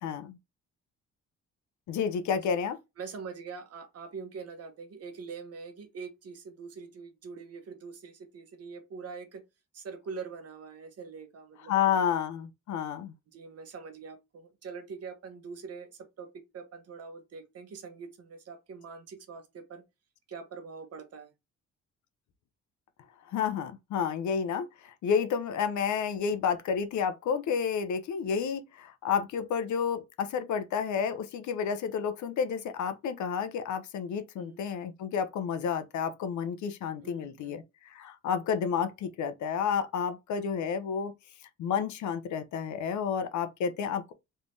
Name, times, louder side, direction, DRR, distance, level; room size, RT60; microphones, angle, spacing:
voice 1, 0.0-0.4 1.9-2.8 11.7-13.1 23.3-41.1 41.6-44.1, left 7 dB, 70° left, 0.7 m, -30 dB
voice 2, 3.0-9.4 9.7-12.0 13.3-19.8 20.3-21.3 34.4-34.6 37.0-37.6, right 5 dB, 55° right, 1.0 m, -44 dB
3.4 x 3.3 x 2.6 m
cardioid pair, 90°, 30 cm